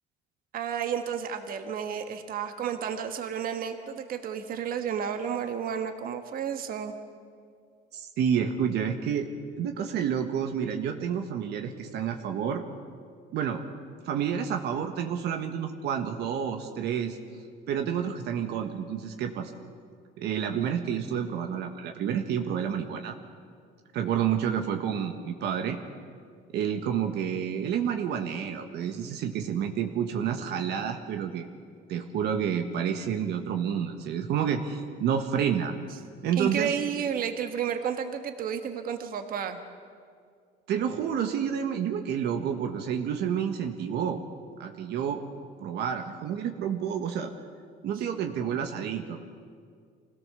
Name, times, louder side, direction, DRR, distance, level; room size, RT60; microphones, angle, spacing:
voice 1, 0.5-6.9 36.4-39.6, right 8 dB, 55° right, 7 dB, 1.5 m, -31 dB
voice 2, 7.9-9.3 9.6-12.6 13.3-13.6 14.0-17.2 17.7-19.5 20.2-23.2 23.9-25.8 26.5-31.5 31.9-35.7 36.2-36.8 40.7-44.2 44.6-45.2 45.6-47.3 47.8-49.2, right 8 dB, 70° right, 5 dB, 1.5 m, -29 dB
25.0 x 17.0 x 6.9 m, 2.1 s
cardioid pair, 130°, 18 cm